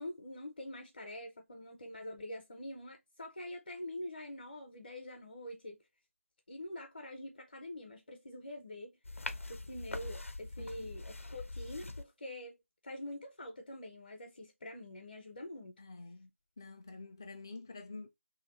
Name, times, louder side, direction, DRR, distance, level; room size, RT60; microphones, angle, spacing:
voice 1, 0.0-5.8 6.5-9.0 9.5-12.6 12.8-15.8, left 1 dB, 45° left, 0.8 m, -45 dB
sound 1, 9.0-12.0, left 2 dB, 80° left, 0.7 m, -43 dB
voice 2, 10.6-10.9 15.8-16.3 16.6-18.1, left 3 dB, 20° left, 0.3 m, -48 dB
2.8 x 2.8 x 3.9 m
figure-of-eight pair, 165°, 7 cm